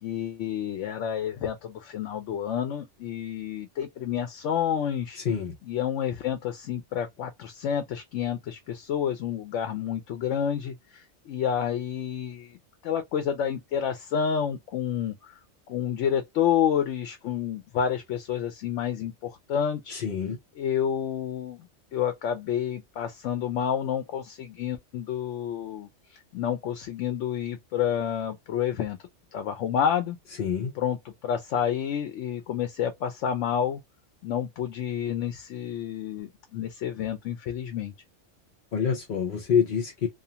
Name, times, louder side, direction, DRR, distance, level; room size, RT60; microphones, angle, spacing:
voice 1, 0.0-5.2 5.6-12.6 12.8-15.4 15.7-20.0 20.6-29.0 29.3-30.2 30.7-33.8 34.2-37.9, left 8 dB, 80° left, 0.9 m, -29 dB
voice 2, 19.9-20.4 30.4-30.7 38.7-40.1, left 7 dB, 55° left, 0.7 m, -26 dB
2.4 x 2.4 x 2.7 m
omnidirectional pair, 1.2 m